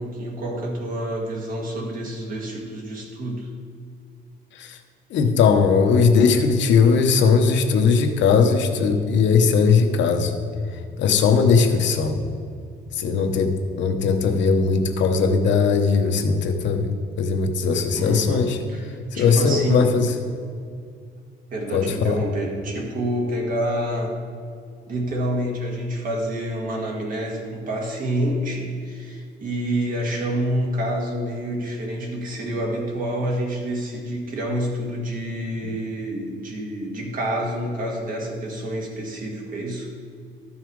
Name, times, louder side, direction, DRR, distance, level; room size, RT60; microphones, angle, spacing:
voice 1, 0.0-3.5 17.9-19.9 21.5-24.2 24.9-39.9, right 1 dB, 45° right, 0 dB, 1.7 m, -28 dB
voice 2, 5.1-10.3 11.0-12.2 12.9-13.5 13.8-16.9 17.2-18.6 19.1-20.1 21.7-22.2, left 5 dB, 65° left, 5 dB, 0.9 m, -19 dB
12.5 x 5.7 x 4.6 m, 2.2 s
cardioid pair, 180°, 20 cm